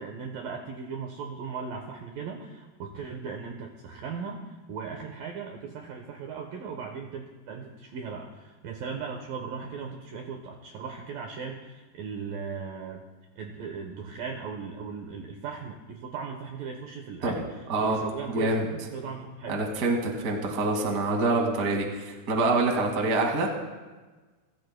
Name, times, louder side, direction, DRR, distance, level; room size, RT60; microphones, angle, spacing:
voice 1, 0.0-13.0 13.4-19.6, right 5 dB, 75° right, 2 dB, 2.2 m, -38 dB
voice 2, 17.7-18.0 18.3-18.7 19.5-23.5, right 2 dB, 40° right, 1 dB, 1.3 m, -26 dB
29.5 x 15.0 x 2.2 m, 1.3 s
omnidirectional pair, 5.2 m